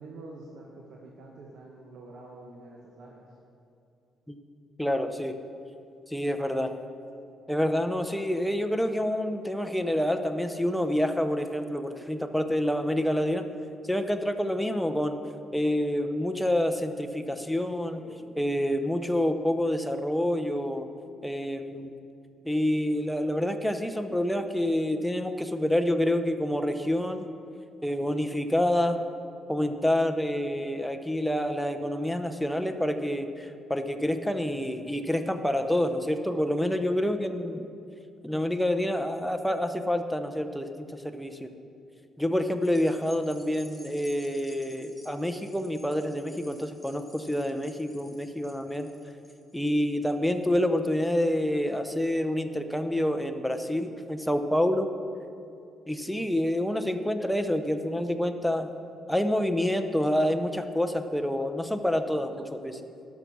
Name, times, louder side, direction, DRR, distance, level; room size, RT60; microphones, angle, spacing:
voice 1, 0.0-3.3, right 2 dB, 70° right, -1 dB, 1.1 m, -46 dB
voice 2, 4.8-5.3 6.1-6.7 7.5-13.5 13.9-15.2 15.5-20.9 21.2-22.0 22.4-27.2 27.8-29.0 29.5-37.7 38.2-41.5 42.2-48.9 49.5-54.9 55.9-58.7 59.1-62.8, left 1 dB, ahead, 7 dB, 0.7 m, -27 dB
sound 1, 42.6-51.2 51.7-51.8, left 2 dB, 20° left, 1.1 m, -54 dB
12.0 x 6.1 x 6.2 m, 2.6 s
cardioid pair, 90°, 0 cm